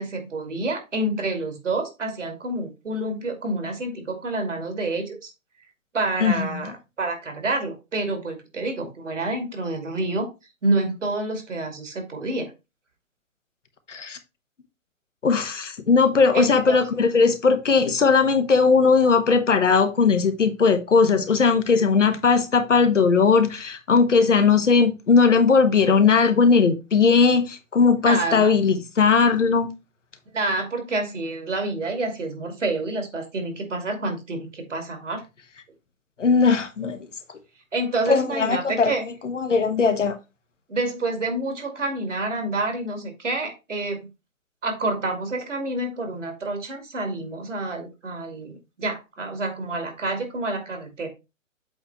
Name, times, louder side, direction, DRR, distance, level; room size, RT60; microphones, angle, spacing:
voice 1, 0.0-5.3 5.9-10.3 10.6-12.5 16.3-16.8 28.1-28.5 30.3-35.2 37.7-39.0 40.7-44.1 44.6-48.5 48.8-51.1, right 2 dB, 65° right, 2.5 m, -28 dB
voice 2, 6.2-6.7 13.9-14.2 15.2-29.7 36.2-37.0 38.1-38.9 39.2-40.2, left 5 dB, 60° left, 1.2 m, -19 dB
7.9 x 3.5 x 4.3 m
figure-of-eight pair, 130°, 41 cm